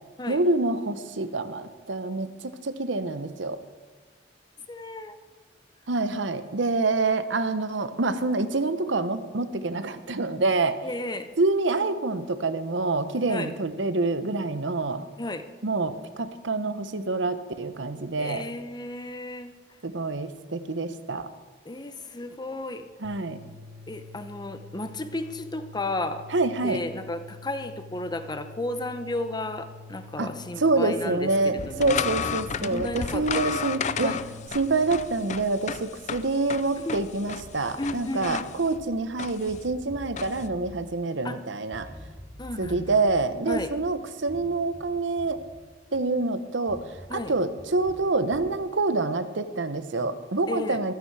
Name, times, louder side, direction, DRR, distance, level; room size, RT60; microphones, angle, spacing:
voice 1, 0.3-3.6 5.9-10.8 11.4-15.0 15.6-18.4 19.8-21.3 23.0-23.4 26.3-26.8 30.2-30.3 30.6-34.1 34.5-41.9 42.6-45.4 45.9-46.8 47.1-50.9, right 3 dB, 75° right, 11 dB, 0.9 m, -26 dB
voice 2, 4.7-5.2 10.8-11.3 13.3-13.5 15.2-15.4 18.2-19.5 21.6-22.9 23.9-26.2 26.6-32.1 32.6-33.5 34.0-34.2 36.8-37.0 37.8-38.5 41.2-41.4 42.4-43.0 43.5-43.7 47.1-47.3 50.5-50.8, left 2 dB, 25° left, 9 dB, 0.9 m, -33 dB
sound 1, 23.0-34.5, left 3 dB, 40° right, 1.7 m, -46 dB
sound 2, 31.6-40.5, left 6 dB, 40° left, 0.5 m, -34 dB
sound 3, 39.5-41.4 41.7-46.2 46.7-48.6, equal, 15° right, 3.0 m, -46 dB
14.0 x 13.0 x 4.8 m, 1.3 s
head